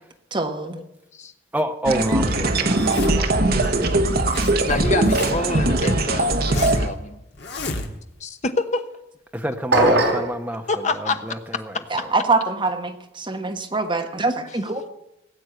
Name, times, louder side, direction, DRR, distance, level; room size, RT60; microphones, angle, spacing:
voice 1, 0.3-0.8 11.9-14.9, right 3 dB, 25° right, 4 dB, 1.2 m, -24 dB
voice 2, 1.5-4.0 5.7-5.8 9.3-11.8, equal, 5° right, 5 dB, 0.9 m, -28 dB
sound 1, 1.9-6.9, right 2 dB, 50° right, 1.2 m, -20 dB
Zipper (clothing), 2.7-3.4 4.0-4.6 4.8-5.6 6.0-6.9 7.4-8.2, left 3 dB, 55° left, 1.7 m, -32 dB
voice 3, 4.3-7.2 8.2-8.8 10.7-11.2, left 3 dB, 35° left, 8 dB, 1.0 m, -27 dB
sound 2, 9.7-10.3, right 2 dB, 65° right, 4.2 m, -18 dB
18.0 x 8.2 x 7.9 m, 0.86 s
head